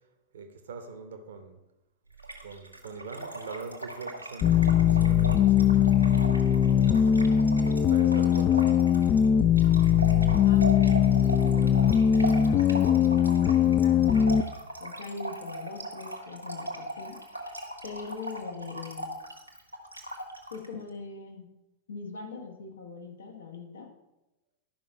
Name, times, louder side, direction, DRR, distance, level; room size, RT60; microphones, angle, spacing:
voice 1, 0.3-1.6 2.4-5.8 6.5-7.1 7.6-9.0, right 4 dB, 65° right, 1.0 m, -42 dB
Trickle dribble / Fill (with liquid), 2.2-20.7, right 1 dB, 85° right, 1.5 m, -38 dB
sound 1, 4.4-14.4, left 9 dB, 30° left, 0.4 m, -21 dB
voice 2, 10.4-14.1 14.8-17.2 17.8-19.1 20.5-21.5 21.9-23.9, left 4 dB, 70° left, 1.6 m, -42 dB
12.0 x 5.4 x 5.5 m
figure-of-eight pair, 90°, 0 cm